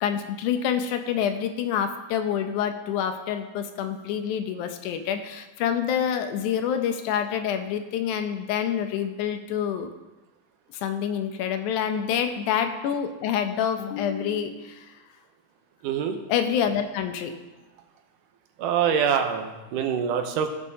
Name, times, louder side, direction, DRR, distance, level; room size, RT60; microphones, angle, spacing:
voice 1, 0.0-9.9 10.7-14.9 16.3-17.3, left 8 dB, 80° left, 7 dB, 2.1 m, -27 dB
voice 2, 15.8-16.2 18.6-20.5, right 8 dB, 90° right, 5 dB, 2.3 m, -25 dB
15.5 x 5.4 x 2.7 m, 1.1 s
omnidirectional pair, 3.6 m